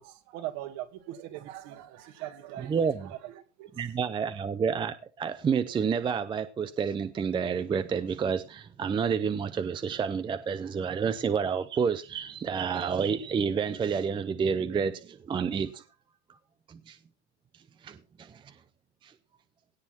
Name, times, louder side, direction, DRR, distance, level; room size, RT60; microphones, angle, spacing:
voice 1, 0.0-3.7, right 13 dB, 50° right, 2.3 m, -41 dB
voice 2, 2.6-3.1 3.8-15.8 16.7-17.0 17.8-18.4 19.0-19.1, right 6 dB, 15° right, 0.6 m, -29 dB
17.0 x 6.1 x 4.3 m
hypercardioid pair, 115°, 34 cm